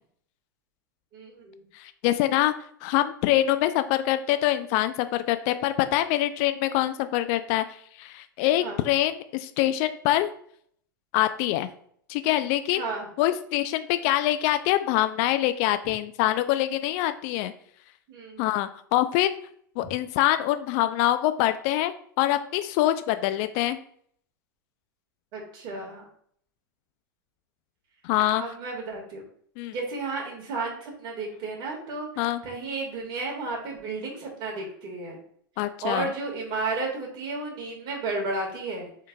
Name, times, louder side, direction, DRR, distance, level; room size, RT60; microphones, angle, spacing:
voice 1, 1.1-1.7 8.6-8.9 12.8-13.1 18.1-18.6 25.3-26.1 28.4-29.2 29.7-35.2 35.8-38.9, right 3 dB, 40° right, 0 dB, 1.9 m, -33 dB
voice 2, 1.7-2.5 2.8-7.6 8.0-10.3 11.1-11.7 12.1-12.8 13.2-17.5 18.4-19.3 19.8-23.8 28.0-28.4 29.6-29.7 32.2-32.4 35.6-36.1, left 14 dB, 45° left, 11 dB, 0.4 m, -24 dB
6.1 x 3.7 x 2.3 m, 0.62 s
figure-of-eight pair, 95°, 12 cm